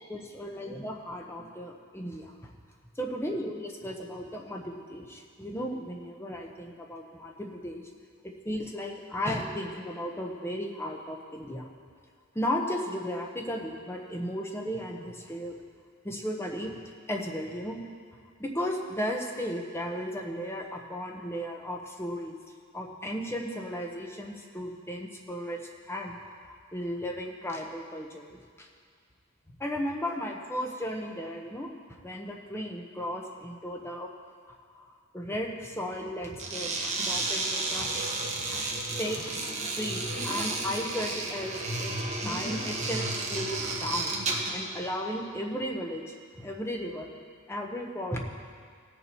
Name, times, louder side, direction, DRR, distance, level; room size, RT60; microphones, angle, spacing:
voice 1, 0.1-2.5 3.0-7.9 8.2-11.7 12.3-15.6 16.0-16.8 17.1-17.8 18.4-22.4 22.7-28.7 29.6-31.8 32.0-34.1 34.5-38.0 38.3-38.7 39.0-42.0 42.2-44.1 44.5-46.0 46.4-47.1 47.5-48.2, equal, 10° left, 1 dB, 0.9 m, -35 dB
sound 1, 36.3-44.6, right 2 dB, 30° right, 1.3 m, -32 dB
17.5 x 6.9 x 4.5 m, 2.1 s
head